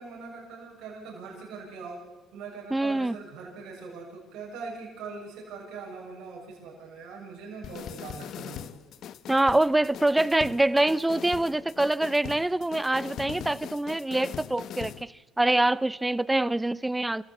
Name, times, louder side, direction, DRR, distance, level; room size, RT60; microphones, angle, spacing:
voice 1, 0.0-2.0 2.3-8.7, right 4 dB, 75° right, 6.8 m, -41 dB
voice 2, 2.7-3.2 9.3-17.2, right 2 dB, 10° right, 0.7 m, -25 dB
sound 1, 7.6-15.0, left 10 dB, 60° left, 1.0 m, -41 dB
26.5 x 15.5 x 8.5 m
supercardioid pair, 80°, 0 cm